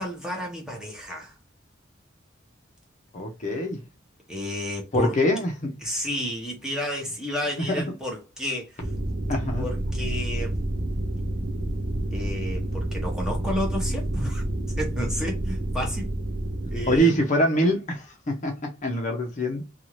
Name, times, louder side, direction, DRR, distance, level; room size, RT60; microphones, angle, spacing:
voice 1, 0.0-1.3 4.3-5.2 5.8-8.8 9.6-10.6 12.1-14.4 14.8-16.1 16.7-17.2, equal, 5° right, 0.9 m, -31 dB
voice 2, 3.1-3.8 4.9-5.8 9.3-9.6 16.9-19.6, equal, 40° left, 0.6 m, -24 dB
sound 1, 8.8-17.0, right 1 dB, 80° right, 0.9 m, -29 dB
2.7 x 2.4 x 3.1 m
head